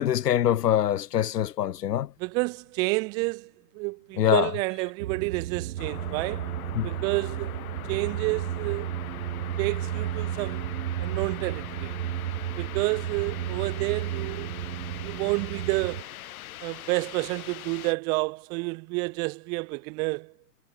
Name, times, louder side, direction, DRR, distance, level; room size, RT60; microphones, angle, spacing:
voice 1, 0.0-2.1 4.2-4.5 6.8-6.9, left 11 dB, 75° left, 2.0 m, -24 dB
voice 2, 2.2-6.5 6.8-7.6 7.9-9.0 9.6-10.7 11.0-12.0 12.6-14.5 15.0-16.1 16.6-20.3, right 29 dB, 10° right, 0.4 m, -30 dB
sound 1, 5.0-16.0, right 13 dB, 80° right, 0.9 m, -33 dB
sound 2, 5.8-17.9, left 13 dB, 60° left, 2.4 m, -42 dB
hypercardioid pair, 150°, 48 cm